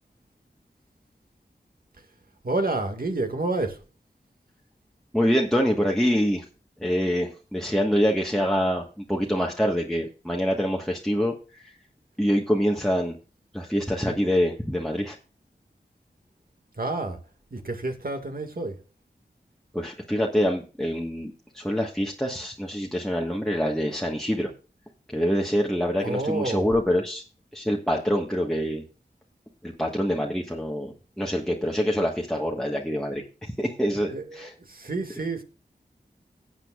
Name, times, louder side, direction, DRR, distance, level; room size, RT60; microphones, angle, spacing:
voice 1, 2.4-3.8 16.8-17.2 17.5-18.8 26.0-26.8 34.1-35.4, right 2 dB, 60° right, 1.9 m, -29 dB
voice 2, 5.1-6.4 6.8-11.7 12.2-13.1 13.5-15.2 19.7-24.5 25.1-27.2 27.5-28.8 29.6-34.5, equal, 5° left, 1.4 m, -25 dB
17.5 x 7.8 x 2.4 m
cardioid pair, 40°, 17 cm